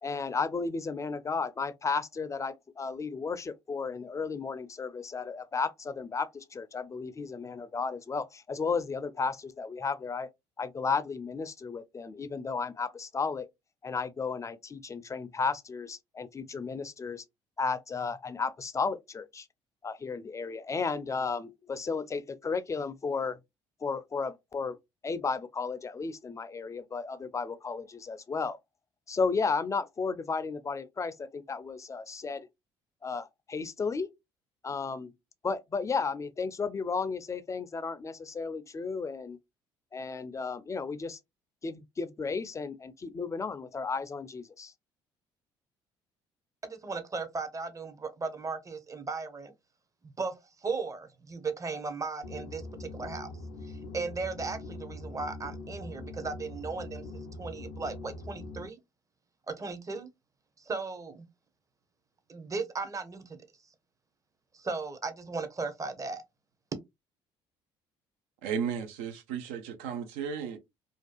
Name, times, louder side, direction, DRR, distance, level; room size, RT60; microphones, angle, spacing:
voice 1, 0.0-10.3 10.6-13.5 13.8-17.2 17.6-19.5 19.8-23.4 23.8-24.8 25.0-28.6 29.1-32.5 33.0-34.1 34.6-35.1 35.4-39.4 39.9-41.2 41.6-44.7, left 4 dB, 25° left, 0.4 m, -33 dB
voice 2, 46.6-49.5 50.2-50.3 50.6-53.3 53.6-58.8 59.5-60.1 60.6-61.2 62.3-63.4 64.5-66.2, right 4 dB, 25° right, 0.7 m, -36 dB
sound 1, 52.2-58.7, left 2 dB, 90° left, 0.5 m, -42 dB
voice 3, 68.4-70.6, right 7 dB, 75° right, 0.5 m, -34 dB
2.6 x 2.3 x 2.2 m
hypercardioid pair, 60°, 12 cm